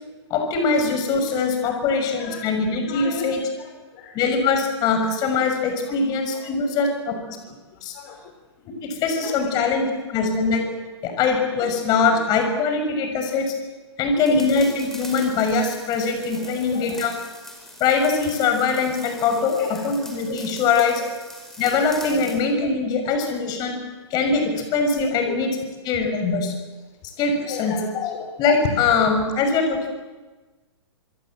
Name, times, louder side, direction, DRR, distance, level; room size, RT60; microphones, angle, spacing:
voice 1, 0.3-3.4 4.1-7.4 7.8-7.9 8.6-10.6 11.0-13.5 14.0-17.2 17.8-21.0 21.6-23.8 24.1-25.6 25.8-26.5 27.2-28.1 28.4-29.9, left 4 dB, 25° left, 5 dB, 6.3 m, -22 dB
voice 2, 2.1-2.6 2.8-4.2 5.8-6.0 6.3-6.7 7.1-7.2 7.7-8.3 9.2-9.6 10.2-10.3 10.7-10.8 14.1-14.4 16.3-17.1 19.5-19.9 20.3-20.4 21.0-21.1 21.6-22.3 23.2-23.3 25.1-25.4 27.4-28.2, left 6 dB, 45° left, 3 dB, 4.9 m, -36 dB
sound 1, 14.2-22.4, left 1 dB, 5° left, 5.0 m, -42 dB
26.5 x 23.5 x 7.9 m, 1.2 s
hypercardioid pair, 145°, 15 cm